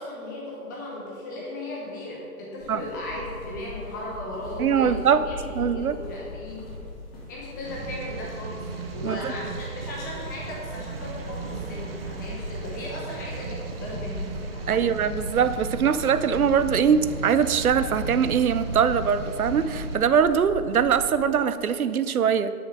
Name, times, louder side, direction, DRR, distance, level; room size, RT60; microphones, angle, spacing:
voice 1, 0.0-6.7 7.3-8.6 8.9-14.9, left 1 dB, 15° left, -4 dB, 0.8 m, -37 dB
sound 1, 2.6-21.3, left 2 dB, 40° left, 2.7 m, -39 dB
voice 2, 4.6-5.2 5.5-6.0 9.0-9.3 14.7-22.5, right 7 dB, 70° right, 13 dB, 0.7 m, -22 dB
sound 2, 7.6-20.0, right 4 dB, 40° right, 0.9 m, -36 dB
9.6 x 6.7 x 5.5 m, 2.4 s
hypercardioid pair, 155°, 45 cm